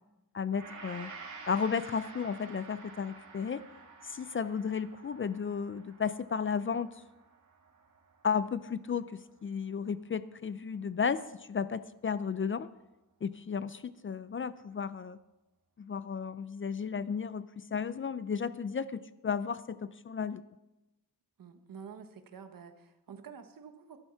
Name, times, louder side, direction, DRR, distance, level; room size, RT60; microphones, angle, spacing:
voice 1, 0.3-1.1 1.5-3.6 4.0-6.9 8.2-9.0 9.4-12.7 13.2-15.2 15.8-20.4, left 6 dB, 35° left, 15 dB, 0.4 m, -33 dB
Gong, 0.5-9.0 9.3-9.5, right 4 dB, 55° right, 2.4 m, -50 dB
voice 2, 21.4-24.0, right 6 dB, 70° right, 8 dB, 1.3 m, -49 dB
11.5 x 11.5 x 5.7 m, 0.97 s
wide cardioid pair, 165°, 35 cm